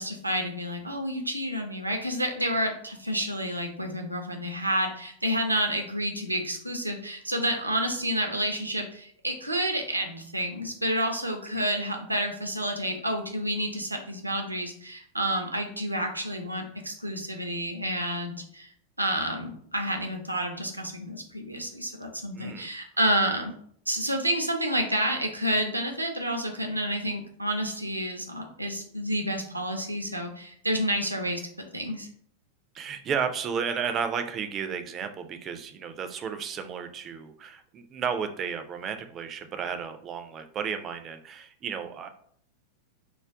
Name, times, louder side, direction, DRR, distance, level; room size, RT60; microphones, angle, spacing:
voice 1, 0.0-18.7 19.0-23.5 23.9-31.4 31.7-32.1, right 1 dB, 85° right, 3 dB, 0.5 m, -29 dB
voice 2, 22.3-22.7 32.7-42.1, right 6 dB, 30° right, 8 dB, 0.3 m, -33 dB
2.3 x 2.2 x 3.6 m, 0.63 s
figure-of-eight pair, 90°, 0 cm